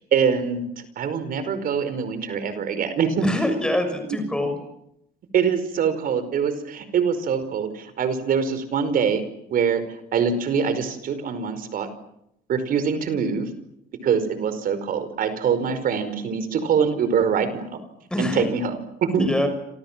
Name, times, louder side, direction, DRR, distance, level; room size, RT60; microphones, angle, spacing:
voice 1, 0.1-0.7 1.0-3.2 5.3-9.2 9.5-9.8 10.1-11.9 12.5-13.5 14.0-17.8 18.2-18.8 19.0-19.3, right 6 dB, 55° right, 11 dB, 5.0 m, -23 dB
voice 2, 3.2-4.6 18.1-18.5 19.2-19.5, left 1 dB, 5° left, 7 dB, 6.5 m, -24 dB
29.0 x 27.0 x 7.5 m, 0.80 s
cardioid pair, 110°, 17 cm